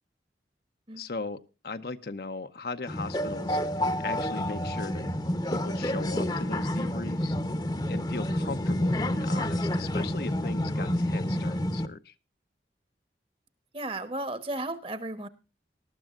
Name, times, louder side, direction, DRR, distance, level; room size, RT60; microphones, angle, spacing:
voice 1, 0.9-3.6 4.0-5.1 5.5-7.4 7.9-12.1, left 3 dB, 55° left, 10 dB, 0.8 m, -38 dB
sound 1, 2.9-11.9, left 1 dB, 25° left, 0.9 m, -29 dB
voice 2, 13.7-15.3, right 2 dB, 30° right, 13 dB, 1.1 m, -34 dB
19.0 x 13.0 x 2.5 m, 0.30 s
head